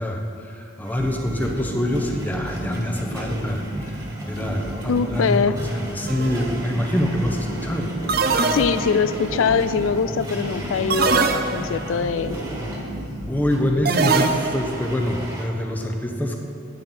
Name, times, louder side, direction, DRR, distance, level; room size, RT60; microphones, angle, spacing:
voice 1, 0.0-4.0 4.3-7.9 13.3-16.4, left 1 dB, 10° left, 3 dB, 0.8 m, -25 dB
Domestic sounds home sounds, 0.8-15.4, equal, 15° right, 1.6 m, -39 dB
sound 1, 1.0-14.7, right 1 dB, 80° right, 1.4 m, -33 dB
voice 2, 4.9-5.6 8.5-12.4, left 5 dB, 80° left, 14 dB, 0.4 m, -22 dB
sound 2, 6.1-6.4 8.1-9.1 10.9-11.9 13.9-14.8, right 4 dB, 50° right, 0.6 m, -22 dB
13.5 x 9.5 x 3.9 m, 2.5 s
head